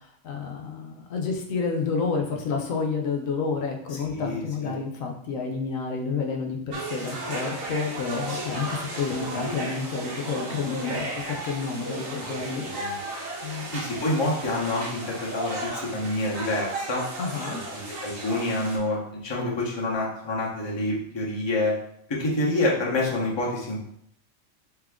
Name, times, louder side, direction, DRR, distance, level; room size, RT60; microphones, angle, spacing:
voice 1, 0.2-12.6 13.4-13.7 17.2-17.6, left 5 dB, 85° left, 2 dB, 1.1 m, -30 dB
voice 2, 3.9-4.7 9.1-9.4 12.1-13.0 13.7-17.0 17.5-21.8 22.1-23.8, left 2 dB, 25° left, -4 dB, 0.8 m, -28 dB
sound 1, 6.7-18.8, right 2 dB, 85° right, 1.4 m, -34 dB
3.6 x 3.3 x 3.6 m, 0.71 s
omnidirectional pair, 1.3 m